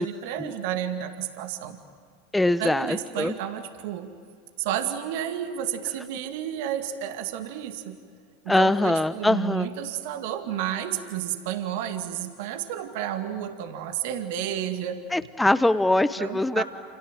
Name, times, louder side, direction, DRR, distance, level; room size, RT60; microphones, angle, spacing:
voice 1, 0.0-1.8 2.6-4.1 4.6-8.0 8.4-15.0 16.2-16.6, right 10 dB, 65° right, 7 dB, 2.1 m, -31 dB
voice 2, 2.3-3.3 8.5-9.7 15.1-16.6, left 2 dB, 5° left, 14 dB, 1.0 m, -22 dB
28.0 x 28.0 x 7.5 m, 2.3 s
hypercardioid pair, 85°, 0 cm